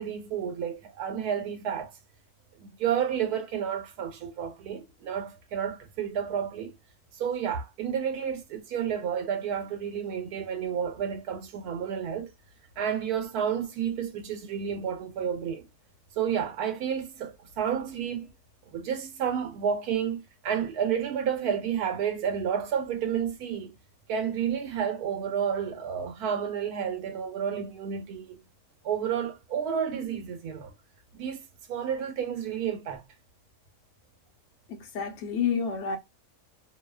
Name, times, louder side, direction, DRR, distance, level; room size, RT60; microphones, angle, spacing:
voice 1, 0.0-1.9 2.6-6.7 7.2-12.3 12.8-15.7 16.2-18.3 18.7-23.7 24.1-28.4 28.8-30.7 31.1-31.4 31.7-33.0, right 8 dB, 80° right, 1.2 m, -31 dB
voice 2, 34.7-36.0, left 6 dB, 60° left, 0.9 m, -29 dB
2.8 x 2.1 x 2.2 m
omnidirectional pair, 1.6 m